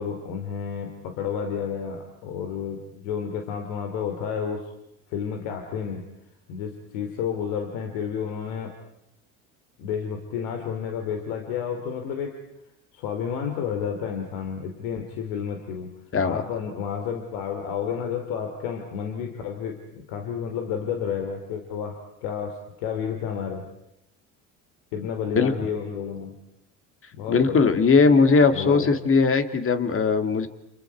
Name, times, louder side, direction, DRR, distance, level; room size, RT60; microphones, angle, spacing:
voice 1, 0.0-4.7 5.1-6.1 6.5-8.7 9.8-12.3 12.9-15.9 16.2-23.6 24.9-26.4 27.1-27.7 28.5-28.9, left 7 dB, 80° left, 4 dB, 3.1 m, -31 dB
voice 2, 16.1-16.4 25.3-25.5 27.3-30.5, left 4 dB, 35° left, 8 dB, 2.6 m, -19 dB
29.5 x 28.0 x 4.7 m, 0.86 s
supercardioid pair, 90°, 38 cm